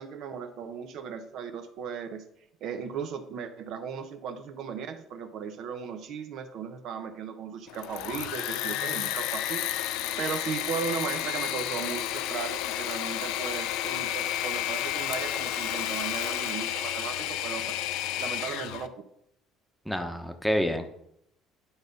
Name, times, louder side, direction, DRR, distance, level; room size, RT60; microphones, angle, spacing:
voice 1, 0.0-2.3 2.6-9.8 10.2-17.6 18.2-19.0, right 7 dB, 65° right, 7 dB, 0.9 m, -36 dB
Engine / Mechanisms, 7.7-18.9, left 12 dB, 80° left, 0.5 m, -31 dB
voice 2, 19.9-20.9, equal, ahead, 5 dB, 0.9 m, -28 dB
9.9 x 4.1 x 5.2 m, 0.76 s
cardioid pair, 100°, 0 cm